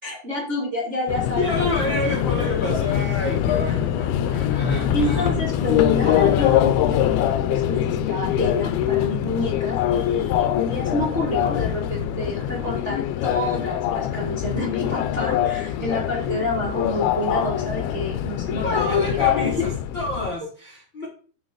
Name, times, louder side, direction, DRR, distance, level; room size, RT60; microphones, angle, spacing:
voice 1, 0.0-2.0 2.7-2.8 4.9-7.1 7.5-19.2 19.6-19.7, left 2 dB, 35° right, -5 dB, 1.1 m, -28 dB
Subway metro underground, 1.1-20.3, left 11 dB, 80° left, 2.5 m, -23 dB
voice 2, 1.3-5.4 18.6-21.1, left 2 dB, 65° left, -2 dB, 1.1 m, -28 dB
6.3 x 5.7 x 4.9 m, 0.40 s
omnidirectional pair, 4.6 m